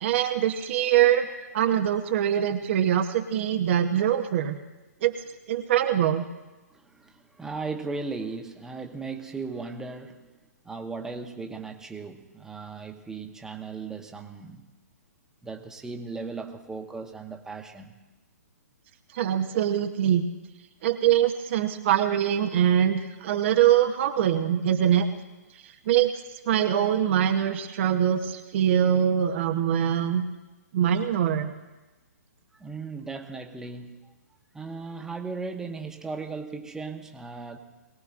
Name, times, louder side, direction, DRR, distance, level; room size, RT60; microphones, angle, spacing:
voice 1, 0.0-1.3 1.5-4.6 5.0-5.1 5.5-6.2 19.1-20.2 20.8-25.1 25.9-26.1 26.5-30.2 30.7-31.5, right 10 dB, 45° right, 5 dB, 0.9 m, -23 dB
voice 2, 6.7-10.3 10.6-14.7 15.4-18.0 32.5-34.1 34.5-37.6, right 4 dB, 5° right, 4 dB, 1.0 m, -37 dB
22.0 x 17.5 x 2.5 m, 1.1 s
figure-of-eight pair, 130°, 9 cm